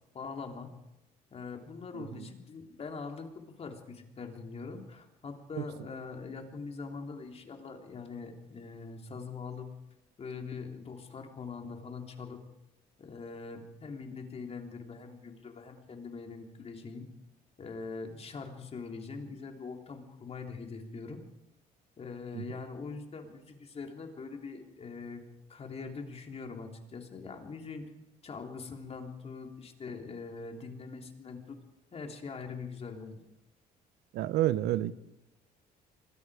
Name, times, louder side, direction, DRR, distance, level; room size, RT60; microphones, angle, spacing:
voice 1, 0.1-0.7 1.3-9.7 10.2-12.4 13.0-17.1 17.6-21.2 22.0-25.2 25.5-27.8 28.2-31.6 31.9-33.2, left 4 dB, 35° left, 3 dB, 3.4 m, -42 dB
voice 2, 1.9-2.3 5.6-5.7 22.3-22.4 34.1-34.9, right 14 dB, 80° right, 15 dB, 0.9 m, -30 dB
25.5 x 21.5 x 5.0 m, 0.89 s
cardioid pair, 110°, 17 cm